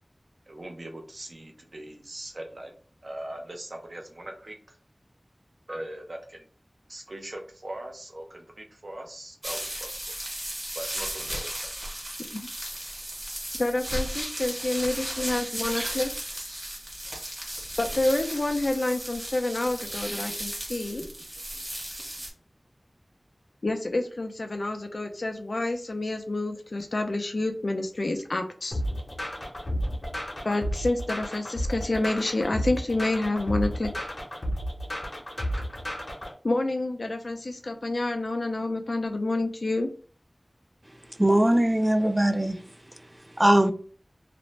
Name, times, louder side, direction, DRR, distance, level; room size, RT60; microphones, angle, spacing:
voice 1, 0.5-2.7 3.0-4.6 5.7-6.4 6.9-10.0 10.7-11.7 15.8-15.9, right 1 dB, 75° right, 0.6 m, -40 dB
sound 1, 9.4-22.3, right 1 dB, 45° right, 1.2 m, -35 dB
voice 2, 13.6-16.1 17.8-21.0 23.6-28.8 30.4-34.1 36.4-39.9, left 2 dB, 85° left, 0.4 m, -28 dB
sound 2, 28.7-36.3, equal, 65° left, 0.8 m, -32 dB
voice 3, 41.2-42.6 43.4-43.7, right 1 dB, 25° right, 0.3 m, -20 dB
2.5 x 2.0 x 3.1 m
wide cardioid pair, 55°, 0 cm